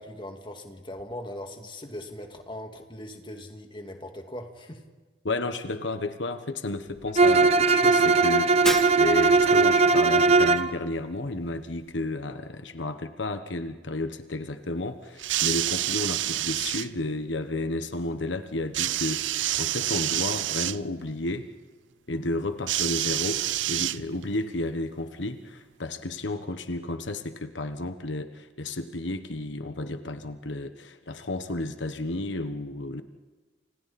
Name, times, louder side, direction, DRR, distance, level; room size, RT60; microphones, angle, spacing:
voice 1, 0.0-4.8, left 1 dB, 25° left, 4 dB, 2.4 m, -40 dB
voice 2, 5.2-8.7 9.0-21.4 22.1-33.0, left 2 dB, 85° left, 9 dB, 1.3 m, -32 dB
Bowed string instrument, 7.2-10.7, right 4 dB, 35° right, 0.9 m, -19 dB
Shatter, 8.7-9.5, left 1 dB, 5° left, 1.6 m, -32 dB
sound 1, 15.2-16.9 18.7-20.8 22.7-24.4 25.3-25.4, right 14 dB, 85° right, 0.6 m, -28 dB
29.5 x 27.0 x 4.3 m, 1.3 s
head